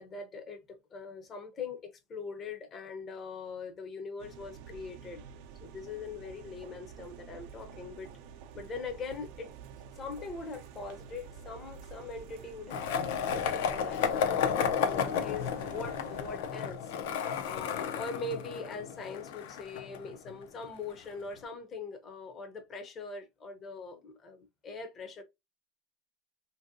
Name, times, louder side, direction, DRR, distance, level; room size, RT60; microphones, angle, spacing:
voice 1, 0.0-5.2 5.6-8.1 8.5-9.5 10.0-16.9 17.4-25.2, left 4 dB, 25° left, 0.6 m, -42 dB
sound 1, 4.2-16.4, right 7 dB, 65° right, 0.5 m, -49 dB
Skateboard, 12.7-20.6, left 7 dB, 80° left, 0.5 m, -32 dB
2.9 x 2.6 x 2.6 m
supercardioid pair, 160°, 0 cm